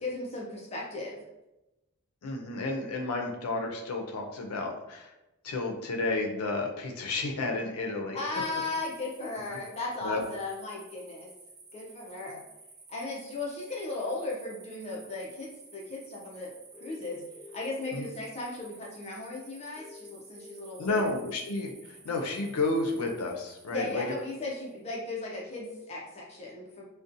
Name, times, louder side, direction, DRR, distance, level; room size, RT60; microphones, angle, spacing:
voice 1, 0.0-1.2 8.1-11.3 11.7-12.4 12.9-16.5 16.8-17.2 17.5-21.1 23.7-26.8, left 2 dB, 30° left, -3 dB, 0.4 m, -36 dB
voice 2, 2.2-5.1 5.4-8.2 10.0-10.2 17.9-18.0 20.8-24.1, left 2 dB, 85° left, 2 dB, 0.5 m, -31 dB
sound 1, 8.3-24.8, right 3 dB, 45° right, 0.7 m, -54 dB
sound 2, 16.7-17.7 19.8-20.8, left 4 dB, 10° right, 1.1 m, -49 dB
2.6 x 2.1 x 2.5 m, 0.96 s
head